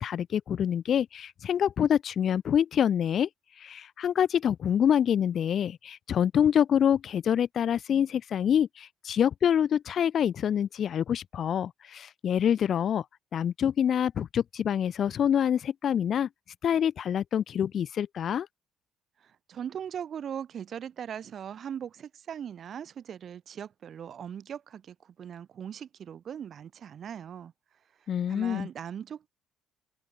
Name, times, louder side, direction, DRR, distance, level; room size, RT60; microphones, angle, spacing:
voice 1, 0.0-3.3 3.6-13.0 13.3-16.3 16.6-18.5 28.1-28.7, left 9 dB, 50° left, 1.3 m, -26 dB
voice 2, 19.2-27.5 28.3-29.3, right 8 dB, 50° right, 3.9 m, -39 dB
open air
figure-of-eight pair, 45°, 0 cm